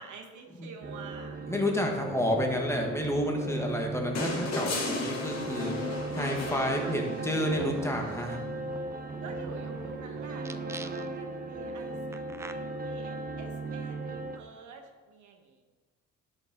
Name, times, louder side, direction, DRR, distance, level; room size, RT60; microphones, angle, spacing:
voice 1, 0.0-1.4 5.5-6.2 6.7-6.9 9.2-15.6, right 5 dB, 75° right, 3 dB, 1.3 m, -47 dB
sound 1, 0.8-14.4, right 3 dB, 30° right, 0.8 m, -37 dB
voice 2, 1.4-5.8 6.1-8.4, left 1 dB, 10° left, 1 dB, 1.5 m, -30 dB
sound 2, 4.2-7.5 9.0-9.1, left 2 dB, 60° left, 2.2 m, -34 dB
sound 3, 7.5-9.9 10.4-11.3 12.1-12.5, right 2 dB, 10° right, 0.3 m, -43 dB
11.0 x 5.2 x 4.0 m, 1.3 s
cardioid pair, 90°, 30 cm